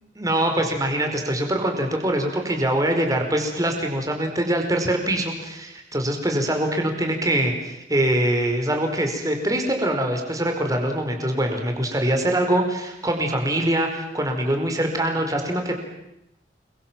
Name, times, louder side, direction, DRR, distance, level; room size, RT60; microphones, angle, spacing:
voice 1, 0.2-15.7, right 1 dB, 20° right, 4 dB, 4.9 m, -23 dB
29.0 x 22.5 x 7.6 m, 0.87 s
head